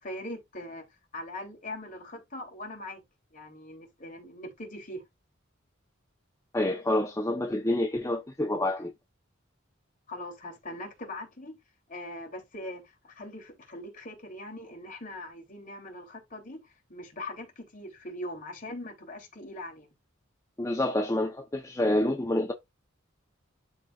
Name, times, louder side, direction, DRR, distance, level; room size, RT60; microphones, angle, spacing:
voice 1, 0.0-0.9 1.1-3.0 3.3-5.0 10.1-11.6 11.9-16.6 16.9-19.9, left 1 dB, 40° left, 3.2 m, -41 dB
voice 2, 6.5-8.9 20.6-22.5, left 1 dB, 15° left, 0.8 m, -27 dB
11.5 x 4.0 x 2.4 m
head